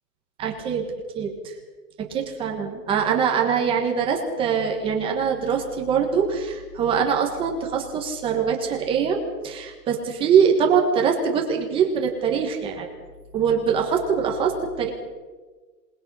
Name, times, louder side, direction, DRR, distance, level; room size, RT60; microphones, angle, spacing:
voice 1, 0.4-0.9 1.1-1.5 2.0-13.0 13.3-14.9, right 6 dB, 10° right, 1 dB, 1.4 m, -23 dB
27.0 x 20.0 x 5.6 m, 1.4 s
hypercardioid pair, 175°, 50 cm